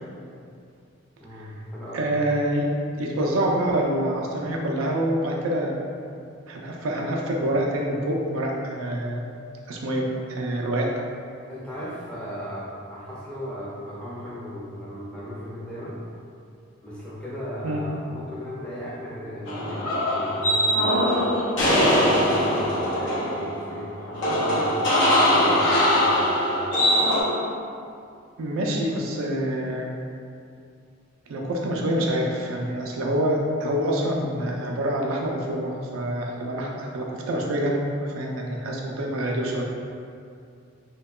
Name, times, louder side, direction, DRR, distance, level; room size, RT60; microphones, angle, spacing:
voice 1, 1.2-2.0 11.5-16.0 16.8-21.3 21.9-26.5, equal, 5° left, -8 dB, 0.4 m, -36 dB
voice 2, 1.9-2.7 3.0-5.8 6.5-9.2 9.7-10.9 17.6-17.8 28.4-29.9 31.3-39.6, right 1 dB, 85° right, -1 dB, 0.4 m, -26 dB
sound 1, 19.5-27.2, equal, 60° left, 0.6 m, -21 dB
2.8 x 2.2 x 2.2 m, 2.4 s
head